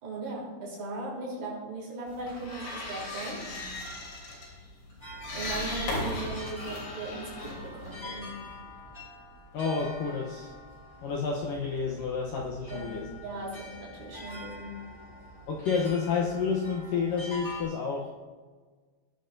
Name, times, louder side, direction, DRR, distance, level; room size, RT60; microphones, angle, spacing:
voice 1, 0.0-3.6 5.3-8.5 12.7-14.8, right 2 dB, 60° right, -4 dB, 5.6 m, -38 dB
sound 1, 2.1-8.6, left 1 dB, 60° left, 5.0 m, -37 dB
sound 2, 5.0-17.6, left 1 dB, 15° left, 1.1 m, -45 dB
voice 2, 9.5-10.5 11.0-13.2 15.5-18.1, left 5 dB, 75° left, -2 dB, 2.0 m, -30 dB
18.5 x 9.9 x 2.7 m, 1.4 s
omnidirectional pair, 5.3 m